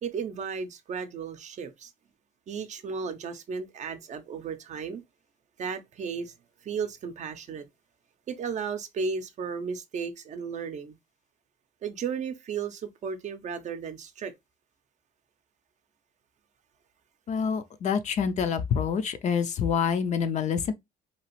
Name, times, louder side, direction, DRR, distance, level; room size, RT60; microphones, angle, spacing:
voice 1, 0.0-1.9 2.5-5.0 5.6-6.3 6.6-7.7 8.3-11.0 11.8-14.3, right 6 dB, 45° right, 0.5 m, -34 dB
voice 2, 17.3-20.7, left 7 dB, 45° left, 0.4 m, -27 dB
2.8 x 2.4 x 2.9 m
cardioid pair, 110°, 17 cm